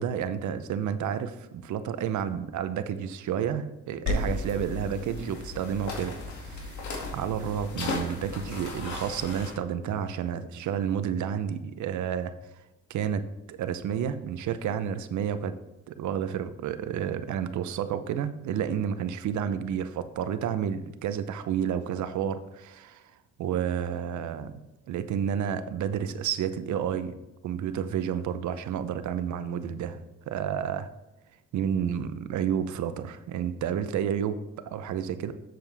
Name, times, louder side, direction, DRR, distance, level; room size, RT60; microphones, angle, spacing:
voice 1, 0.0-6.1 6.4-12.3 12.9-15.5 15.9-23.0 23.4-24.6 24.9-27.2 27.4-30.9 31.5-34.4 34.6-35.3, right 8 dB, 70° right, 11 dB, 0.8 m, -30 dB
sound 1, 4.1-9.5, left 3 dB, 70° left, 2.2 m, -34 dB
7.7 x 7.1 x 3.4 m, 1.0 s
cardioid pair, 90°, 30 cm